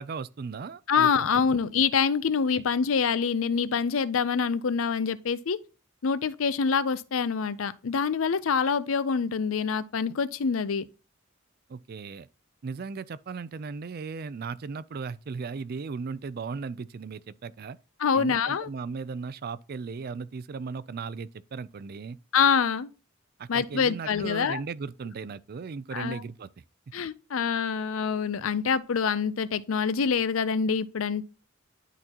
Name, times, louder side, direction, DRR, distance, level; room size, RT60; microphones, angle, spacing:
voice 1, 0.0-1.6 2.5-2.7 11.7-12.3 12.6-17.8 18.1-22.2 23.4-26.5, right 5 dB, 50° right, 0.4 m, -37 dB
voice 2, 0.9-5.6 6.0-10.8 18.0-18.7 22.3-22.9 23.5-24.6 25.9-26.2 26.9-31.2, left 6 dB, 75° left, 0.5 m, -26 dB
11.0 x 4.0 x 2.9 m
head